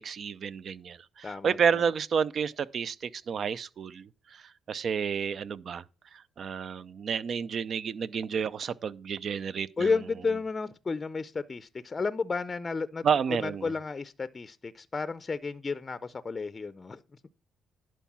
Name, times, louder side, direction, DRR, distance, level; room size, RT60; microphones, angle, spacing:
voice 1, 0.0-5.8 6.1-9.9 13.0-13.7, right 6 dB, 55° right, 0.5 m, -30 dB
voice 2, 1.2-1.8 9.8-17.0, left 4 dB, 30° left, 0.5 m, -32 dB
11.0 x 4.6 x 5.9 m
cardioid pair, 90°, 0 cm